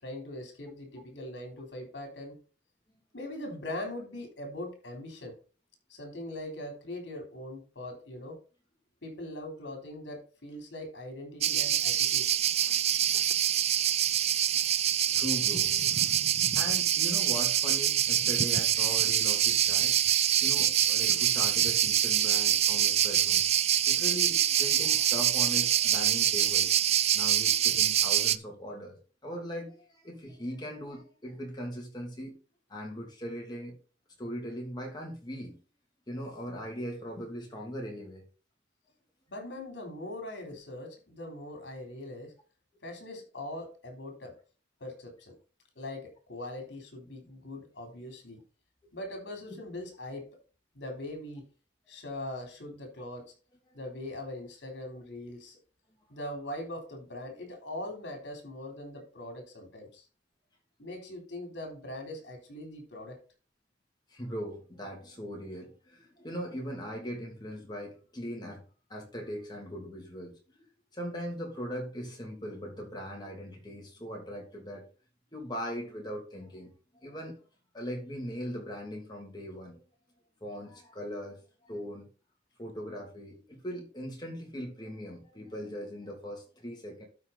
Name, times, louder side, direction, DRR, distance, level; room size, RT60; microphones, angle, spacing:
voice 1, 0.0-2.4 3.1-5.3 5.9-8.4 9.0-12.3 39.3-42.3 42.8-44.3 44.8-45.3 45.8-48.4 48.9-50.3 50.7-51.5 51.9-53.3 53.7-55.6 56.1-60.1 60.8-63.2, left 1 dB, 65° left, 3.6 m, -41 dB
sound 1, 11.4-28.4, right 11 dB, 35° right, 0.4 m, -25 dB
voice 2, 14.5-20.0 20.4-23.4 23.9-26.7 27.1-29.0 29.2-32.3 32.7-33.7 34.2-35.6 36.1-38.2 49.5-49.6 64.1-68.6 68.9-70.3 70.9-74.8 75.3-76.7 77.0-77.3 77.7-79.8 80.4-82.1 82.6-87.0, equal, 25° left, 2.8 m, -40 dB
12.0 x 4.7 x 4.1 m
head